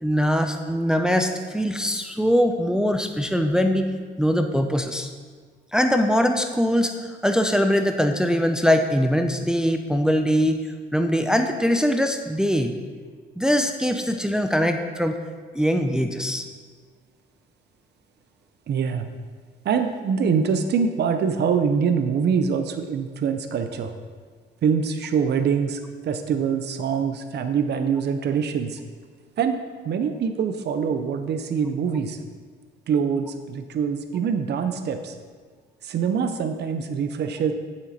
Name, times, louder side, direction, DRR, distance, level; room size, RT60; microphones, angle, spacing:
voice 1, 0.0-3.9 4.2-5.1 5.7-10.6 10.9-12.7 13.4-15.2 15.5-16.5, equal, 5° right, 6 dB, 0.6 m, -22 dB
voice 2, 18.7-19.1 19.6-23.9 24.6-28.8 29.4-29.6 29.8-32.2 32.9-35.1 35.8-37.5, right 6 dB, 60° right, 8 dB, 0.7 m, -24 dB
8.8 x 7.4 x 4.2 m, 1.5 s
cardioid pair, 90°, 20 cm